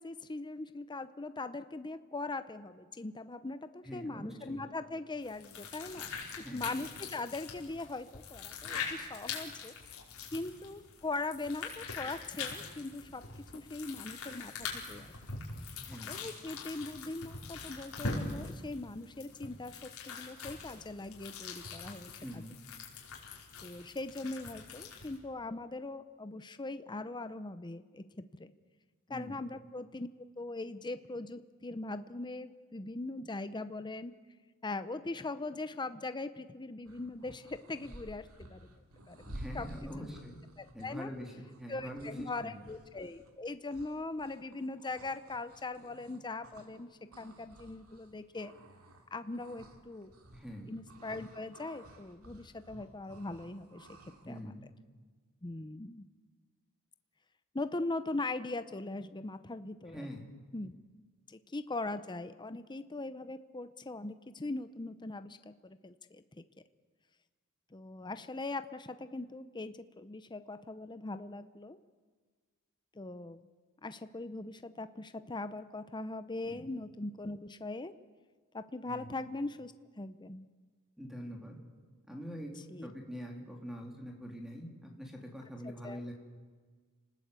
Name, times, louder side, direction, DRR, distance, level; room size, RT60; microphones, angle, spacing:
voice 1, 0.0-9.7 10.3-13.2 13.5-15.1 16.1-22.4 23.6-28.5 29.1-30.1 30.4-34.1 34.6-38.7 39.1-39.7 39.9-40.1 40.6-41.1 41.7-46.9 47.2-48.5 49.1-50.1 50.7-53.9 54.2-54.5 55.4-56.1 57.5-60.1 60.5-60.7 61.3-66.4 67.7-71.8 72.9-73.4 73.8-77.9 78.5-80.4 82.7-82.9 85.6-86.0, left 2 dB, 20° left, 11 dB, 0.7 m, -40 dB
voice 2, 3.8-4.6 6.4-6.8 15.8-16.2 22.2-22.5 29.1-29.4 39.3-40.4 40.7-42.7 50.3-50.7 54.2-54.6 59.9-60.2 76.4-76.7 78.9-79.1 81.0-81.5 82.1-82.5 82.8-86.1, equal, ahead, 1 dB, 3.3 m, -44 dB
sound 1, 5.2-25.2, left 4 dB, 70° left, 5.0 m, -43 dB
sound 2, 36.8-46.8 47.1-54.4, right 1 dB, 70° right, 2.8 m, -53 dB
29.5 x 19.5 x 8.3 m, 1.5 s
head